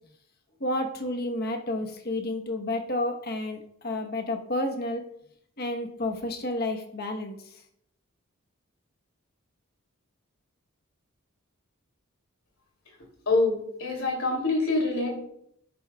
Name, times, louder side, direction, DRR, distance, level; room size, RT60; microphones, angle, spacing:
voice 1, 0.6-5.0 5.6-7.6, left 1 dB, 45° left, 4 dB, 1.2 m, -31 dB
voice 2, 13.3-15.2, left 3 dB, 70° left, 1 dB, 3.0 m, -25 dB
11.5 x 10.5 x 2.4 m, 0.71 s
head